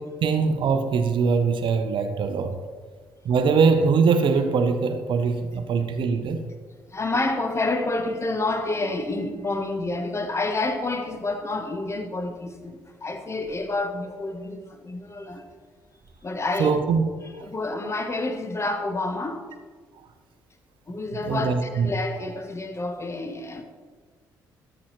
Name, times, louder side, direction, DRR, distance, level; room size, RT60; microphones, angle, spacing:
voice 1, 0.2-2.6 3.2-6.4 16.6-17.0 17.3-17.5 21.1-21.9, right 5 dB, 50° right, 0.7 m, -22 dB
voice 2, 6.9-15.4 16.2-16.8 17.4-19.4 20.9-23.6, left 2 dB, 25° left, 1.1 m, -29 dB
12.5 x 6.1 x 3.1 m
figure-of-eight pair, 45°, 10 cm